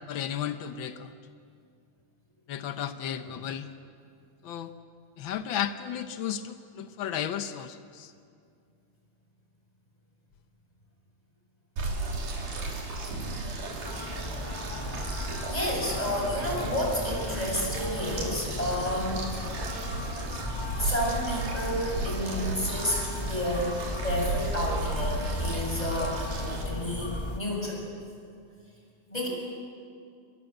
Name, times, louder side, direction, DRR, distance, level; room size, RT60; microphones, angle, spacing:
voice 1, 0.1-1.1 2.5-3.7 4.4-4.7 5.2-8.1, left 9 dB, 90° left, 9 dB, 1.0 m, -34 dB
sound 1, 11.8-26.6, right 3 dB, 85° right, 4.7 m, -35 dB
sound 2, 13.8-27.4, left 2 dB, 40° left, 0.3 m, -35 dB
voice 2, 15.1-19.5 20.8-27.8 29.1-29.3, equal, 10° left, -1 dB, 7.0 m, -31 dB
29.0 x 22.5 x 7.9 m, 2.4 s
omnidirectional pair, 3.5 m